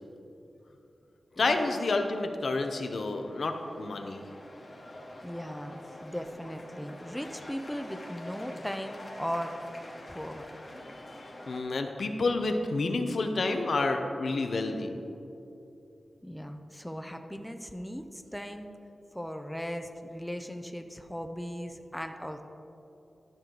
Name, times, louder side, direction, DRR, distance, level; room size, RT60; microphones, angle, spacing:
voice 1, 1.3-4.2 11.1-11.2 11.5-14.9, left 3 dB, 70° left, 5 dB, 0.7 m, -29 dB
sound 1, 2.7-11.6, left 1 dB, 35° left, 1.3 m, -46 dB
voice 2, 5.2-9.6 10.1-10.5 16.2-18.7 19.1-22.4, equal, 5° left, 6 dB, 0.4 m, -38 dB
11.5 x 6.2 x 3.9 m, 2.8 s
wide cardioid pair, 125°, 0 cm